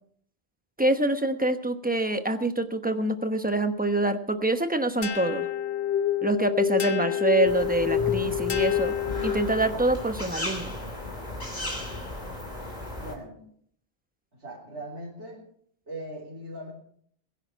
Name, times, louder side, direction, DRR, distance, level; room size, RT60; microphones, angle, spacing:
voice 1, 0.8-5.5 6.2-8.9 9.2-10.7, right 2 dB, 10° right, 8 dB, 1.0 m, -25 dB
sound 1, 5.0-9.8, left 10 dB, 60° left, 1.0 m, -27 dB
sound 2, 7.4-13.1, left 1 dB, 40° left, 3.1 m, -35 dB
voice 2, 12.9-13.4 14.3-15.4 15.9-16.7, right 1 dB, 85° right, -6 dB, 4.0 m, -40 dB
21.0 x 11.0 x 4.7 m, 0.62 s
omnidirectional pair, 1.1 m